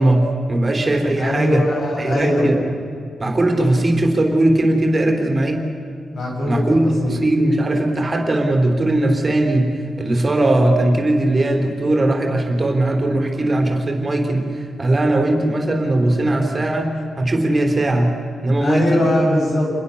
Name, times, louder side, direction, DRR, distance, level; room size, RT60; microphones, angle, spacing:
voice 1, 0.0-1.6 2.0-2.6 3.2-5.6 6.5-9.7 10.0-16.9 17.2-18.1 18.4-19.1, right 1 dB, 25° right, 3 dB, 3.9 m, -18 dB
voice 2, 1.2-2.5 6.1-7.2 18.6-19.7, left 1 dB, 55° left, -1 dB, 6.9 m, -21 dB
28.5 x 21.5 x 7.2 m, 2.3 s
wide cardioid pair, 130°, 0 cm